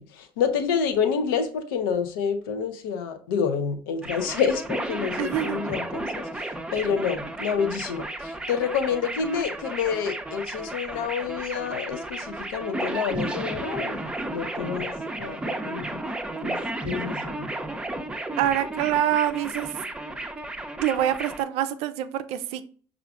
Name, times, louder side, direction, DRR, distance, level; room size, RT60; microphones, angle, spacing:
voice 1, 0.0-16.0 16.4-17.5, left 6 dB, 75° left, 0.6 m, -28 dB
sound 1, 4.0-21.4, right 2 dB, 10° right, 0.5 m, -33 dB
voice 2, 5.2-5.6 18.4-19.7 20.8-22.7, right 11 dB, 65° right, 0.4 m, -25 dB
5.6 x 2.4 x 2.4 m
hypercardioid pair, 65°, 11 cm